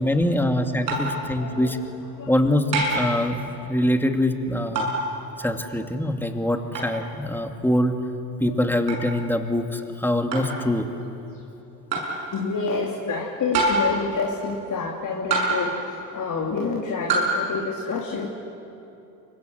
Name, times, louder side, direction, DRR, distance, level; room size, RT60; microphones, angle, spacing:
voice 1, 0.0-1.8 2.3-3.4 3.7-4.9 5.4-8.0 8.4-10.9, left 1 dB, 5° left, 5 dB, 2.5 m, -23 dB
voice 2, 0.9-1.8 2.1-2.3 5.2-5.3 8.4-8.7 12.3-18.3, left 4 dB, 35° left, 0 dB, 3.1 m, -28 dB
sound 1, 0.9-1.2 2.7-3.1 4.8-5.0 6.7-6.9 8.9-9.1 10.3-10.6 11.9-12.2 13.5-14.0 15.3-15.8 17.1-17.4, right 2 dB, 80° right, 6.8 m, -24 dB
29.5 x 24.5 x 8.0 m, 2.8 s
hypercardioid pair, 65°, 50 cm